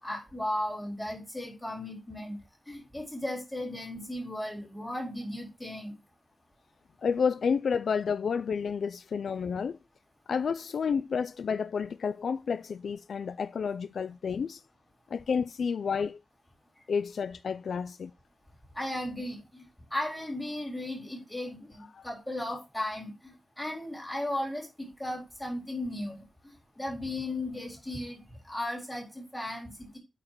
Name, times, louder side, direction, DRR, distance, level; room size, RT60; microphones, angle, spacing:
voice 1, 0.0-2.4 2.7-5.9 18.7-19.6 19.9-30.0, left 1 dB, 10° left, 3.9 m, -36 dB
voice 2, 7.0-9.8 10.3-14.6 15.1-16.2 16.9-18.1 22.0-22.1, left 6 dB, 75° left, 0.3 m, -30 dB
8.6 x 4.9 x 4.5 m
wide cardioid pair, 160°, 0 cm